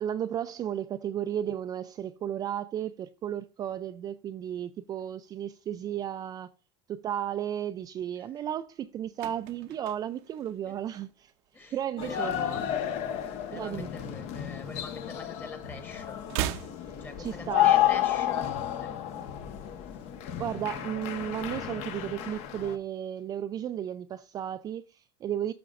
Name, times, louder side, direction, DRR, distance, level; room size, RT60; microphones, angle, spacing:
voice 1, 0.0-6.5 6.9-11.3 11.7-12.3 13.5-13.9 16.9-17.7 20.4-25.5, right 10 dB, 30° right, 0.3 m, -34 dB
sound 1, 8.8-11.5 11.8-12.1 12.3-13.8 14.1-15.4 15.7-17.8 18.1-18.2, right 12 dB, 70° right, 0.7 m, -39 dB
voice 2, 11.5-12.8 13.2-16.2 17.0-18.5 18.8-18.9 19.1-19.6, left 3 dB, 15° left, 1.3 m, -43 dB
sound 2, 12.0-22.8, left 11 dB, 55° left, 1.0 m, -31 dB
12.5 x 5.1 x 2.5 m
cardioid pair, 145°, 13 cm